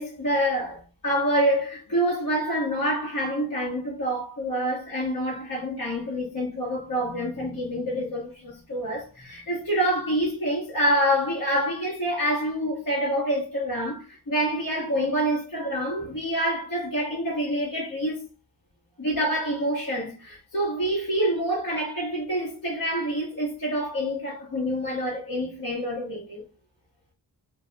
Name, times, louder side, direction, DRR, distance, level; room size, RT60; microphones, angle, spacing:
voice 1, 0.0-18.3 19.0-26.4, equal, 50° left, 1.4 m, -27 dB
2.6 x 2.6 x 3.3 m
cardioid pair, 60°, 40 cm